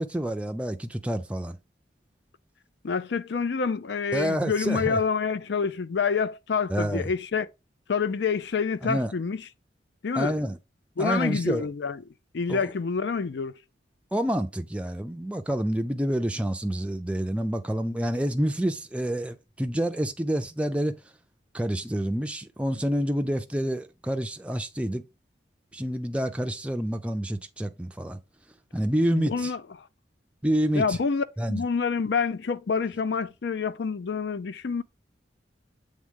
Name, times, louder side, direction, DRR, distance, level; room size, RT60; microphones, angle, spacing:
voice 1, 0.0-1.6 4.1-5.0 6.7-7.1 8.8-9.1 10.1-10.6 11.0-11.7 12.5-12.7 14.1-21.0 21.5-25.0 25.7-28.2 28.7-29.5 30.4-31.0 31.4-31.6, equal, 5° right, 0.4 m, -28 dB
voice 2, 2.8-7.5 7.9-9.4 10.0-10.4 11.0-12.0 12.3-13.5 29.1-29.9 30.7-34.8, left 5 dB, 65° left, 0.5 m, -27 dB
7.5 x 3.6 x 3.6 m
head